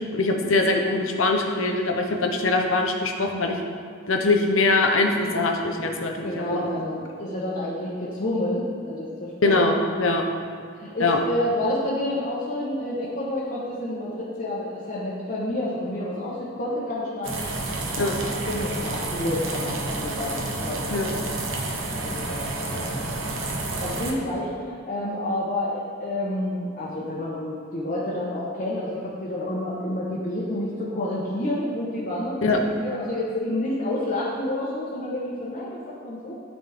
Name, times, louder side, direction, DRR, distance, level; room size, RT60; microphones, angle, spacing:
voice 1, 0.1-3.6 4.1-6.6 9.4-10.2 11.0-11.2 18.0-18.1 20.9-21.1 32.4-32.6, left 2 dB, 75° left, 2 dB, 0.9 m, -22 dB
voice 2, 6.2-9.7 10.8-17.5 18.3-21.4 22.0-22.9 23.8-36.3, left 1 dB, 45° left, -8 dB, 1.2 m, -29 dB
sound 1, 17.2-24.1, right 2 dB, 75° right, 1.0 m, -30 dB
12.5 x 4.3 x 3.6 m, 2.2 s
head